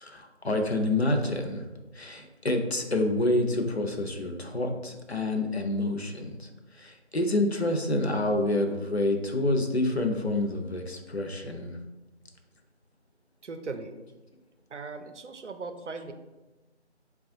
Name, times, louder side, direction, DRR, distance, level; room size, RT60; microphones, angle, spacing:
voice 1, 0.0-1.6 1.9-11.8, left 2 dB, 65° left, 4 dB, 0.6 m, -28 dB
voice 2, 13.4-13.9 14.7-16.1, right 4 dB, 80° right, 7 dB, 0.6 m, -38 dB
4.6 x 2.3 x 2.6 m, 1.1 s
figure-of-eight pair, 175°, 35 cm